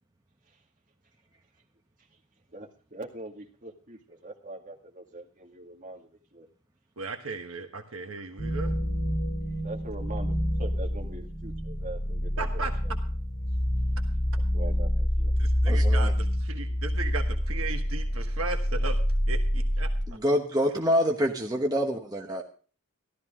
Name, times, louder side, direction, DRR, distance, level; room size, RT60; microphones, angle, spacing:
voice 1, 2.5-6.5 9.6-13.0 14.5-15.3 16.7-16.8, right 2 dB, 40° right, 2 dB, 2.2 m, -43 dB
voice 2, 7.0-8.8 12.4-12.7 15.4-19.0 19.3-19.9, right 4 dB, 70° right, 5 dB, 1.4 m, -36 dB
sound 1, 8.4-20.1, equal, 85° left, 3.0 m, -27 dB
voice 3, 15.7-16.1 20.1-22.4, equal, 20° right, 1 dB, 1.2 m, -26 dB
14.0 x 13.0 x 3.7 m, 0.40 s
head